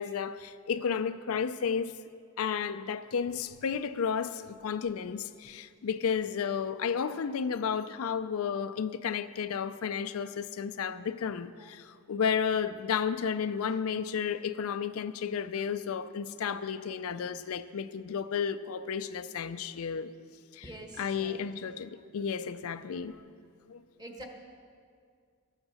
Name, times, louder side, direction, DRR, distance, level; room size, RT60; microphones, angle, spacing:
voice 1, 0.0-2.0 2.4-20.1 20.5-20.6 21.0-23.2 23.7-23.8, left 7 dB, 75° left, 0.4 m, -32 dB
voice 2, 20.6-21.5 24.0-24.2, right 1 dB, 20° right, 1.2 m, -46 dB
13.5 x 8.9 x 6.3 m
head